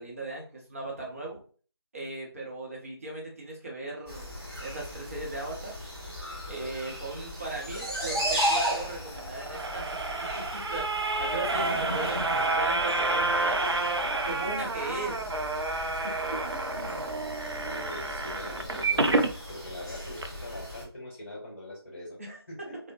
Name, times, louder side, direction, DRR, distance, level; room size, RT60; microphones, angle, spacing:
voice 1, 0.0-1.4 1.9-4.3 4.6-5.7 6.5-14.0 14.2-15.2 22.2-22.7, right 2 dB, 35° right, -2 dB, 0.7 m, -38 dB
sound 1, 4.1-20.8, equal, ahead, 0.7 m, -36 dB
sound 2, 9.2-19.3 19.8-19.9 20.2-20.3, right 2 dB, 80° right, 0.4 m, -29 dB
voice 2, 15.8-17.1 17.5-22.2 22.5-22.8, left 1 dB, 30° left, -4 dB, 1.0 m, -43 dB
2.8 x 2.1 x 2.5 m, 0.40 s
figure-of-eight pair, 165°, 14 cm